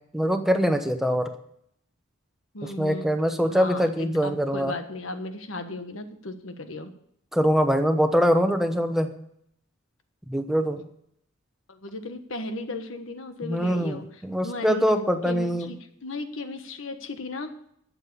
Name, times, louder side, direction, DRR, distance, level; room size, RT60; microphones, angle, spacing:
voice 1, 0.1-1.3 2.6-4.7 7.3-9.1 10.3-10.8 13.4-15.7, equal, ahead, 6 dB, 1.0 m, -23 dB
voice 2, 2.5-3.1 3.5-6.9 11.7-14.8 15.2-17.6, left 2 dB, 70° left, 8 dB, 1.3 m, -36 dB
12.5 x 7.5 x 7.0 m, 0.71 s
head